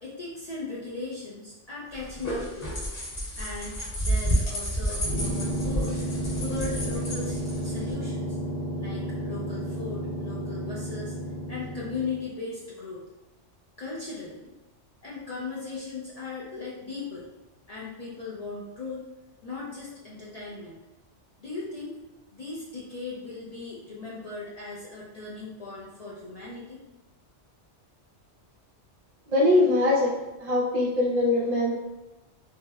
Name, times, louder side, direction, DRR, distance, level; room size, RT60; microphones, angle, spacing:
voice 1, 0.0-2.7 3.4-6.0 6.4-8.4 8.8-11.2 11.5-13.0 13.8-14.5 15.0-17.2 17.7-19.0 19.4-20.8 21.4-22.0 22.3-26.8, left 3 dB, 80° left, -7 dB, 0.3 m, -38 dB
sound 1, 1.9-7.9, equal, 55° left, 1.1 m, -30 dB
sound 2, 4.9-12.3, equal, 35° left, 0.7 m, -32 dB
voice 2, 29.3-30.1 30.4-31.7, left 2 dB, 50° right, -4 dB, 0.5 m, -22 dB
3.1 x 2.0 x 2.2 m, 1.1 s
omnidirectional pair, 1.2 m